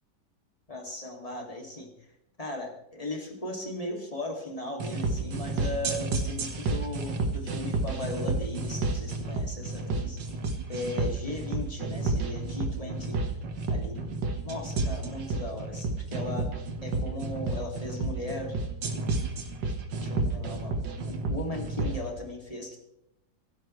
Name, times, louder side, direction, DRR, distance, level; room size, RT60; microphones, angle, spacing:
voice 1, 0.7-1.9 2.4-10.2 10.7-13.2 13.7-14.1 14.4-16.5 16.8-18.6 20.0-22.8, left 2 dB, 20° left, 1 dB, 2.7 m, -37 dB
sound 1, 4.8-22.0, right 3 dB, 85° right, 2.2 m, -30 dB
25.5 x 12.5 x 3.3 m, 0.85 s
omnidirectional pair, 1.9 m